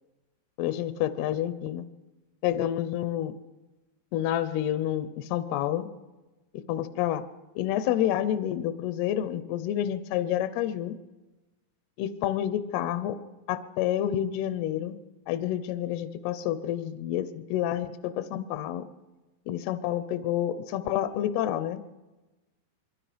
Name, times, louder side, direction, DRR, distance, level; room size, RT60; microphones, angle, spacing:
voice 1, 0.6-1.9 2.4-3.3 4.1-5.9 6.7-7.2 7.6-11.0 12.0-13.2 13.5-15.0 15.3-18.8 19.5-22.0, left 11 dB, 75° left, 12 dB, 2.5 m, -29 dB
26.5 x 22.5 x 5.1 m, 1.1 s
omnidirectional pair, 5.3 m